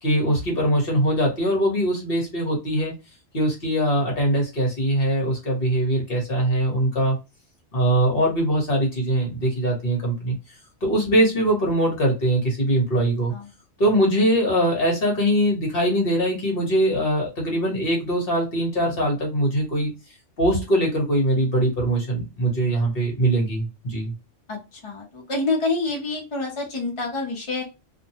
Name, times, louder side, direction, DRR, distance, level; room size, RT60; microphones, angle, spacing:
voice 1, 0.0-2.9 3.3-7.2 7.7-10.3 10.8-13.3 13.8-19.9 20.4-24.1, right 1 dB, 45° left, 0 dB, 1.2 m, -22 dB
voice 2, 24.5-27.6, left 3 dB, 30° left, -2 dB, 0.6 m, -27 dB
2.6 x 2.1 x 2.8 m, 0.27 s
omnidirectional pair, 1.4 m